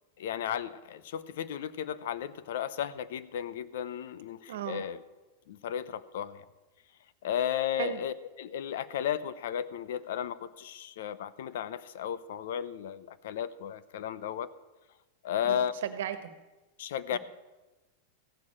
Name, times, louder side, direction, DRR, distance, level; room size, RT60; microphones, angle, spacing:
voice 1, 0.2-5.0 5.5-6.4 7.2-14.5 15.2-15.7 16.8-17.2, left 9 dB, 70° left, 16 dB, 0.8 m, -34 dB
voice 2, 4.5-4.8 7.8-8.0 15.4-16.3 17.1-17.2, right 10 dB, 75° right, 10 dB, 1.4 m, -36 dB
15.0 x 6.5 x 8.8 m, 1.1 s
supercardioid pair, 160°, 0 cm